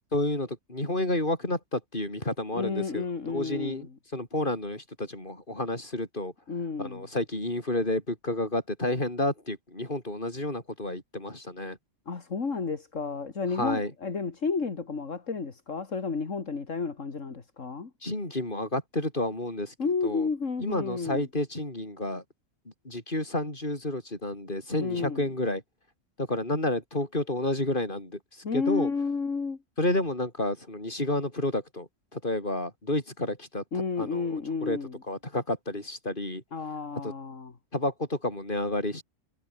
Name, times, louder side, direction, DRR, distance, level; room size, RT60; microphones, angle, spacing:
voice 1, 0.1-6.3 6.8-11.8 13.5-13.9 18.0-19.7 20.0-20.3 20.6-22.2 22.8-25.6 26.2-28.2 28.5-28.9 29.8-33.6 34.0-34.8 35.1-36.4 37.0-37.1 37.7-39.0, left 1 dB, 40° left, 6.0 m, -30 dB
voice 2, 2.5-3.9 6.5-7.0 12.1-17.9 19.8-21.3 24.8-25.3 28.4-29.6 33.7-35.0 36.5-37.5, left 4 dB, 70° left, 2.6 m, -31 dB
omnidirectional pair, 1.3 m